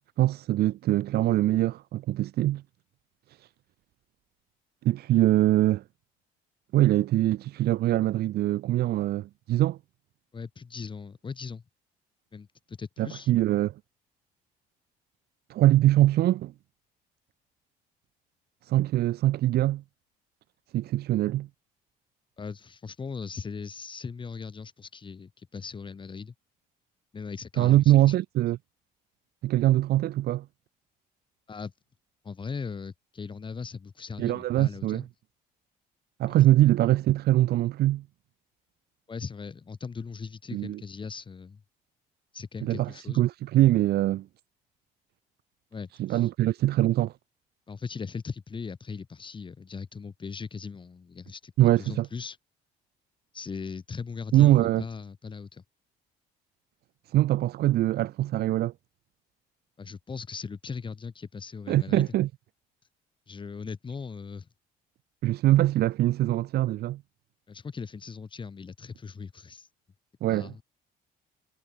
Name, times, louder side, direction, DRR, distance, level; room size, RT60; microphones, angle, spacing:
voice 1, 0.2-2.6 4.8-5.8 6.7-9.8 13.0-13.7 15.5-16.5 18.6-19.8 20.7-21.5 27.6-28.6 29.4-30.4 34.2-35.0 36.2-38.0 40.5-40.8 42.6-44.2 46.0-47.1 51.6-52.1 54.3-54.8 57.1-58.7 61.7-62.3 65.2-67.0 70.2-70.5, right 14 dB, 70° right, 1.7 m, -23 dB
voice 2, 10.3-11.6 12.3-13.3 22.4-26.3 27.1-28.1 31.5-31.7 32.2-35.1 39.1-41.6 42.3-43.2 45.7-46.3 47.7-52.4 53.3-55.6 59.8-62.1 63.3-64.5 67.5-69.7 70.3-70.6, left 5 dB, 30° left, 4.3 m, -39 dB
cardioid pair, 110°, 17 cm